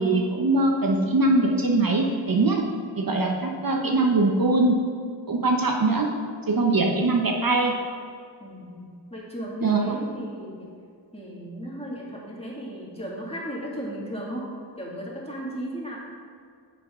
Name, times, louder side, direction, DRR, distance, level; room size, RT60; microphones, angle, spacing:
voice 1, 0.0-2.6 3.0-4.7 5.3-6.1 6.5-7.7 9.6-9.9, right 2 dB, 50° right, 1 dB, 1.0 m, -22 dB
voice 2, 8.4-10.7 11.1-16.0, equal, 15° left, -4 dB, 2.3 m, -35 dB
9.1 x 6.9 x 3.8 m, 2.2 s
cardioid pair, 55°, 44 cm